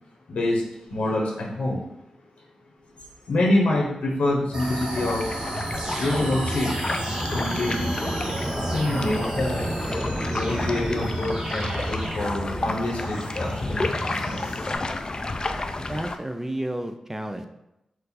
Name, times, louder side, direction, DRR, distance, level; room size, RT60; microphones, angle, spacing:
voice 1, 0.3-1.8 3.3-5.2 6.0-6.7 7.3-7.9 8.5-9.6 10.2-14.3, left 1 dB, 85° left, -1 dB, 1.1 m, -26 dB
sound 1, 4.5-14.8, right 1 dB, 35° right, 0.9 m, -31 dB
sound 2, 4.6-16.2, left 2 dB, 40° left, 0.4 m, -31 dB
voice 2, 15.9-17.4, right 1 dB, 15° right, 6 dB, 0.5 m, -31 dB
4.4 x 2.6 x 4.0 m, 0.88 s
cardioid pair, 55°, 2 cm